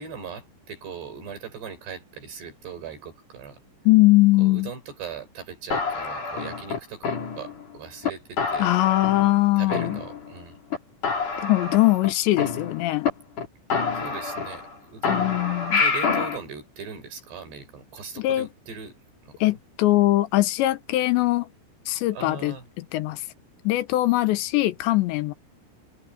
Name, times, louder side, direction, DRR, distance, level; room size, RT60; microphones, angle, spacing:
voice 1, 0.0-3.6 4.4-7.1 7.4-8.8 9.6-10.6 13.9-15.3 15.8-19.5 22.1-22.7, right 6 dB, 55° right, 7.5 m, -39 dB
voice 2, 3.9-4.7 8.6-10.0 11.4-13.1 15.1-15.8 18.2-18.5 19.4-21.5 21.9-22.5 22.9-23.2 23.6-25.3, left 18 dB, 75° left, 2.9 m, -21 dB
sound 1, 5.7-7.7 8.0-8.1 8.4-9.4 9.7-10.4 10.7-10.8 11.0-13.1 13.4-13.5 13.7-14.7 15.0-16.4, left 5 dB, 40° left, 4.9 m, -27 dB
omnidirectional pair, 5.8 m